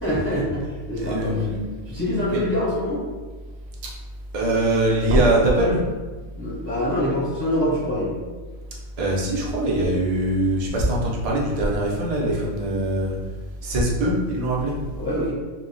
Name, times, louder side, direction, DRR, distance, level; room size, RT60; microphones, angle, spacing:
voice 1, 0.0-1.5 1.9-3.0 5.0-5.7 6.3-8.2 15.0-15.3, equal, 10° left, -9 dB, 0.7 m, -25 dB
voice 2, 1.0-1.6 2.1-2.4 4.3-5.8 9.0-13.2 13.6-14.8, right 1 dB, 55° right, -4 dB, 0.4 m, -22 dB
2.2 x 2.1 x 3.7 m, 1.3 s
omnidirectional pair, 1.4 m